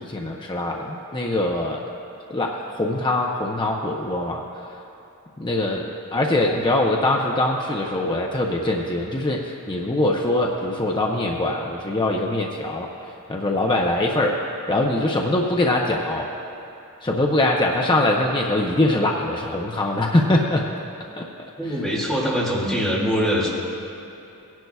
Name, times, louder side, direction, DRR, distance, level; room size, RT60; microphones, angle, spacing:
voice 1, 0.0-1.8 2.3-4.4 5.4-12.9 13.3-14.4 14.7-16.3 17.0-20.7 21.2-21.3, left 1 dB, 20° left, 0 dB, 0.6 m, -23 dB
voice 2, 21.6-23.5, equal, ahead, -6 dB, 2.2 m, -23 dB
18.0 x 10.5 x 2.3 m, 2.9 s
head